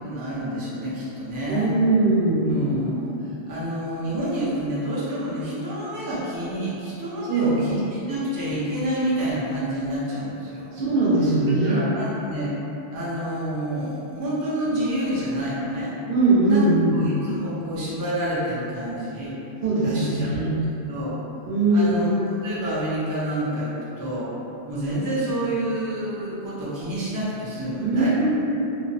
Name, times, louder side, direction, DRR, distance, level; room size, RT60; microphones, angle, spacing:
voice 1, 0.0-1.7 2.5-10.7 11.5-12.5 12.9-15.9 16.5-16.7 16.9-19.3 19.8-20.3 20.9-21.2 21.7-24.3 24.7-28.1, right 1 dB, 30° right, -9 dB, 0.3 m, -28 dB
voice 2, 1.5-2.5 7.3-7.6 10.7-11.8 16.1-17.0 19.6-20.5 21.5-22.1 27.8-28.4, right 2 dB, 75° right, -8 dB, 0.9 m, -20 dB
2.6 x 2.0 x 2.6 m, 2.9 s
omnidirectional pair, 1.1 m